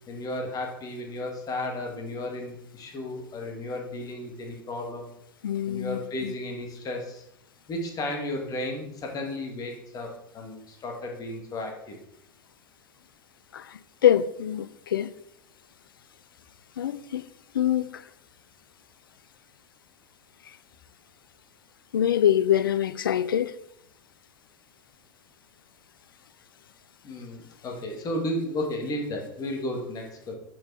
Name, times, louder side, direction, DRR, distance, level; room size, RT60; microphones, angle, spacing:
voice 1, 0.1-5.1 5.7-7.2 7.7-10.1 10.3-12.0 27.0-30.4, left 1 dB, 30° left, 2.3 m, -33 dB
voice 2, 5.4-6.3 13.5-15.1 16.8-17.2 17.5-18.0 21.9-23.5, left 10 dB, 75° left, 0.4 m, -24 dB
7.1 x 5.4 x 5.0 m
figure-of-eight pair, 80°, 12 cm